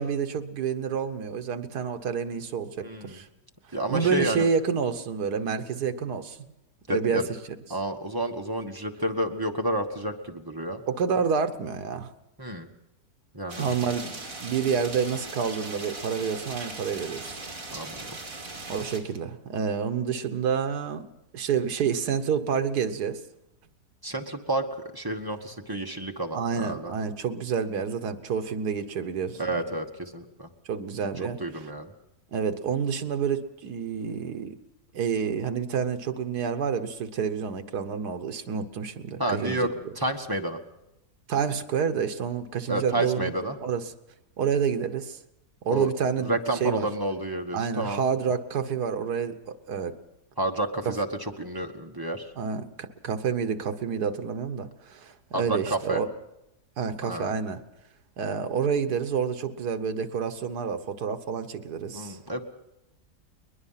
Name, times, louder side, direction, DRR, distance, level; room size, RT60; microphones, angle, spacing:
voice 1, 0.0-3.3 3.9-6.4 6.9-7.2 10.9-12.1 13.6-14.1 14.4-17.4 18.7-21.1 21.3-23.2 26.3-29.4 30.7-31.4 32.3-34.6 34.9-39.7 41.3-43.3 43.6-43.8 44.4-45.2 45.6-46.3 46.6-46.9 47.5-50.0 50.8-50.9 52.4-56.1 56.8-57.6 58.2-62.2, right 6 dB, 75° right, 7 dB, 1.6 m, -28 dB
voice 2, 2.8-3.2 3.7-4.5 6.9-7.3 7.7-10.8 12.4-12.7 13.3-13.7 17.7-18.2 24.0-24.7 24.9-26.9 29.4-30.5 31.4-31.9 39.2-39.7 40.0-40.6 42.7-43.6 45.7-45.9 46.2-48.0 50.4-52.3 55.3-56.0 57.0-57.3 61.9-62.4, right 1 dB, 15° right, 3 dB, 1.3 m, -30 dB
sound 1, 13.5-19.0, right 3 dB, 55° right, 3.2 m, -39 dB
21.5 x 21.0 x 5.7 m, 0.88 s
omnidirectional pair, 1.7 m